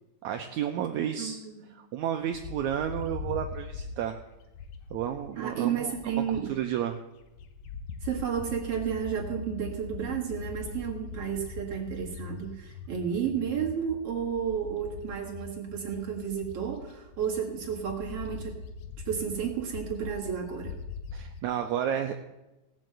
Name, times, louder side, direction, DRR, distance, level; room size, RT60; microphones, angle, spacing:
voice 1, 0.2-1.4 1.7-4.2 4.9-6.2 6.5-7.0 21.1-22.2, right 10 dB, 75° right, 5 dB, 1.8 m, -31 dB
voice 2, 1.2-1.7 5.4-6.5 8.0-18.6 19.1-20.7, right 8 dB, 50° right, -1 dB, 2.2 m, -32 dB
Bird, 2.3-6.8 7.2-21.4, left 5 dB, 70° left, 1.7 m, -42 dB
17.0 x 6.2 x 7.7 m, 1.0 s
omnidirectional pair, 3.9 m